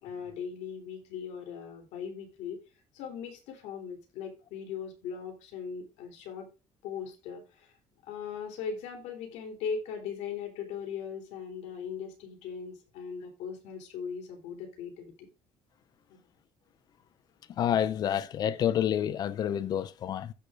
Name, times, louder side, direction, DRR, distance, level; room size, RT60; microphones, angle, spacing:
voice 1, 0.0-2.6 2.9-6.5 6.8-7.7 8.1-15.3 16.1-16.2, left 6 dB, 80° left, 3.4 m, -39 dB
voice 2, 17.6-20.3, left 10 dB, 35° left, 0.5 m, -28 dB
15.5 x 6.5 x 2.5 m
cardioid pair, 175°, 11 cm